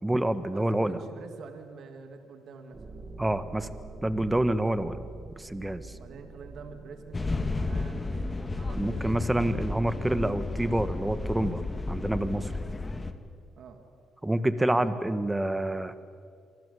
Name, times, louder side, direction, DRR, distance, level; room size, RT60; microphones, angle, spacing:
voice 1, 0.0-1.0 3.2-3.7 4.0-5.0 5.4-6.0 8.7-11.6 11.9-12.5 14.2-15.9, right 1 dB, 10° right, 12 dB, 1.7 m, -27 dB
voice 2, 0.5-2.9 5.9-9.3 13.6-13.8 14.7-14.9, right 5 dB, 70° right, 6 dB, 2.8 m, -46 dB
sound 1, 2.7-12.2, right 3 dB, 30° right, 3.1 m, -47 dB
sound 2, 7.1-13.1, left 2 dB, 20° left, 2.0 m, -32 dB
28.0 x 25.0 x 8.6 m, 2.1 s
cardioid pair, 90°, 0 cm